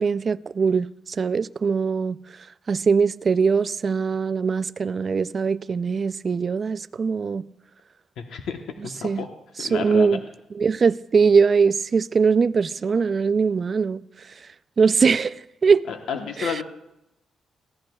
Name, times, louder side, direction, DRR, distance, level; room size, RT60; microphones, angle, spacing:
voice 1, 0.0-2.2 2.7-7.5 8.8-9.2 9.6-10.2 10.5-14.0 14.8-15.9 16.4-16.6, right 5 dB, 45° right, 0.4 m, -21 dB
voice 2, 8.2-9.3 9.6-10.2 15.9-16.6, left 7 dB, 85° left, 1.0 m, -31 dB
22.0 x 15.5 x 2.4 m
cardioid pair, 95°, 0 cm